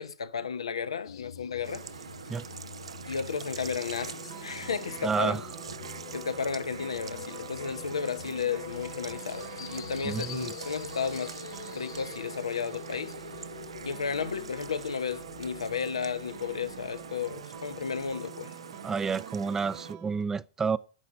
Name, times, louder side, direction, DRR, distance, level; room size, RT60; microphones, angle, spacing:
voice 1, 0.0-1.8 3.1-5.4 6.1-11.3 11.7-13.1 13.8-18.5, left 6 dB, 90° left, 1.0 m, -33 dB
sound 1, 1.0-18.2, left 9 dB, 70° left, 0.7 m, -46 dB
sound 2, 1.6-19.9, right 6 dB, 90° right, 0.6 m, -44 dB
sound 3, 3.9-20.2, right 10 dB, 45° right, 1.3 m, -49 dB
voice 2, 5.0-5.4 10.0-10.5 18.8-20.8, right 5 dB, 15° right, 0.5 m, -30 dB
9.9 x 5.9 x 8.6 m
hypercardioid pair, 115°, 3 cm